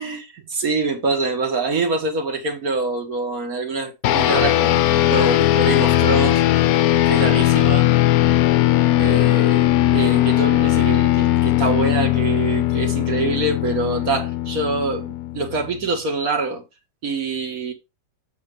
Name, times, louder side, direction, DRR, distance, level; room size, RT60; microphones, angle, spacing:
voice 1, 0.0-4.8 5.1-6.4 7.1-7.9 9.0-16.6 17.0-17.7, right 3 dB, 55° right, 2.0 m, -25 dB
sound 1, 4.0-15.7, left 14 dB, 70° left, 0.9 m, -18 dB
8.1 x 3.4 x 5.3 m
omnidirectional pair, 1.9 m